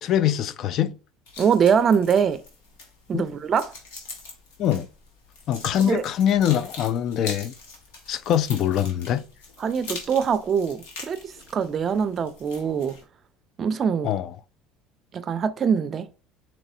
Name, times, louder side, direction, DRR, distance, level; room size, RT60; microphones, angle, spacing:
voice 1, 0.0-0.9 3.1-3.3 4.6-4.9 5.5-7.5 8.1-9.2 14.0-14.3, left 10 dB, 55° left, 0.3 m, -23 dB
sound 1, 1.3-13.0, left 3 dB, 85° left, 1.1 m, -42 dB
voice 2, 1.4-2.4 3.1-3.7 5.8-6.0 9.6-13.0 13.6-14.1 15.1-16.1, right 7 dB, 40° right, 0.4 m, -23 dB
4.1 x 3.0 x 2.6 m
supercardioid pair, 85°, 0 cm